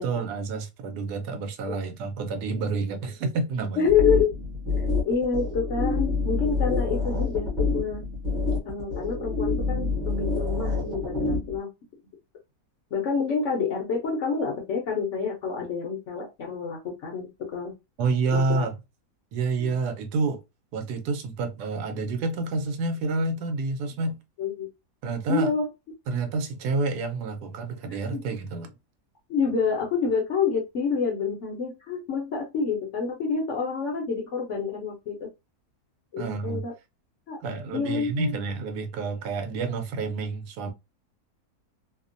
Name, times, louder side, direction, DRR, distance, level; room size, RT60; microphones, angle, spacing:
voice 1, 0.0-3.9 18.0-18.8 19.3-20.4 20.7-24.2 25.0-25.5 26.1-28.7 36.2-36.6 37.4-40.7, right 3 dB, 90° right, 1.2 m, -29 dB
voice 2, 3.8-4.3 4.8-8.0 8.6-11.7 12.9-17.7 18.3-18.7 19.6-19.7 24.4-24.7 25.3-25.6 27.9-28.2 29.3-35.3 36.1-36.7 37.3-37.4 37.7-38.3, left 5 dB, 60° left, 0.8 m, -28 dB
sound 1, 3.9-11.6, left 3 dB, 35° right, 1.0 m, -27 dB
2.8 x 2.1 x 2.5 m
omnidirectional pair, 1.7 m